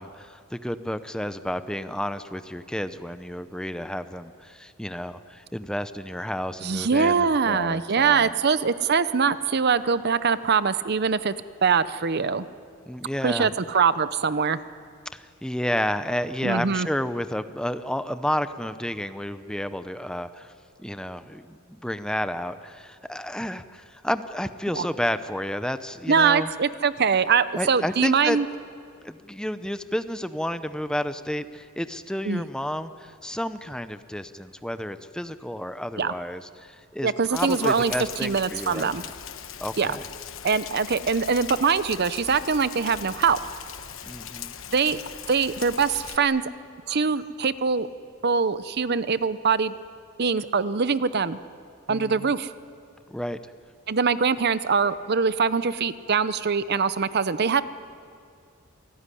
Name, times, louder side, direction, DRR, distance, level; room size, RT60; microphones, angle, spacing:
voice 1, 0.0-8.3 12.9-13.5 15.1-20.5 20.8-26.5 27.6-28.4 29.0-39.1 39.6-40.0 44.1-44.5 51.9-52.1 53.1-53.4, equal, 5° left, 11 dB, 0.7 m, -31 dB
voice 2, 6.6-11.3 11.6-12.5 13.2-14.6 16.4-16.9 24.8-24.9 26.1-28.5 32.2-32.4 36.0-36.1 37.0-37.9 38.2-39.0 39.8-40.0 40.4-43.4 44.7-45.0 45.3-46.4 46.9-47.9 48.2-49.7 50.2-51.4 51.9-52.5 53.9-57.6, right 5 dB, 50° right, 14 dB, 0.7 m, -23 dB
Rain, 37.3-46.2, left 9 dB, 65° left, 1.1 m, -39 dB
27.5 x 18.5 x 10.0 m, 2.3 s
head